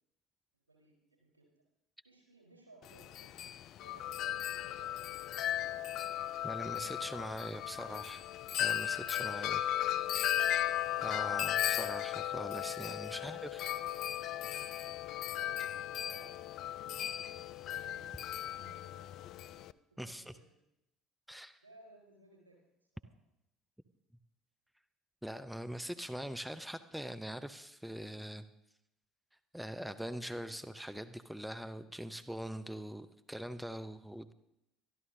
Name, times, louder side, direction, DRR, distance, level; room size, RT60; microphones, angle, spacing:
voice 1, 0.7-1.4 2.0-3.3 3.8-4.1 4.6-6.0 9.3-10.2 10.7-11.2 13.1-14.7 16.0-16.7 17.0-20.5 21.6-22.6 23.0-23.1, right 2 dB, 85° right, -1 dB, 4.1 m, -61 dB
Wind chime, 2.8-19.7, left 12 dB, 55° left, 0.4 m, -36 dB
voice 2, 6.4-8.2 8.6-9.6 10.5-10.7 11.0-13.6 20.0-20.2 21.3-21.6 25.2-28.5 29.5-34.3, equal, 5° right, 11 dB, 0.8 m, -42 dB
24.5 x 12.5 x 2.8 m, 0.85 s
figure-of-eight pair, 55°, 0 cm